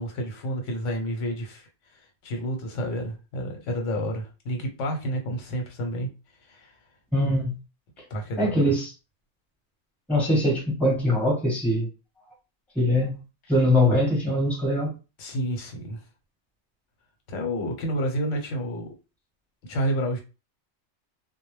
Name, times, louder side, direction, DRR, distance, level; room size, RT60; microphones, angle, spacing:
voice 1, 0.0-1.7 2.2-6.1 6.5-6.7 8.1-8.6 15.2-16.0 17.3-18.9 19.6-20.2, equal, 85° left, 1.1 m, -30 dB
voice 2, 7.1-7.5 8.4-8.9 10.1-11.9 12.7-13.2 13.5-14.9, left 1 dB, ahead, 1.0 m, -22 dB
2.2 x 2.0 x 3.1 m
omnidirectional pair, 1.2 m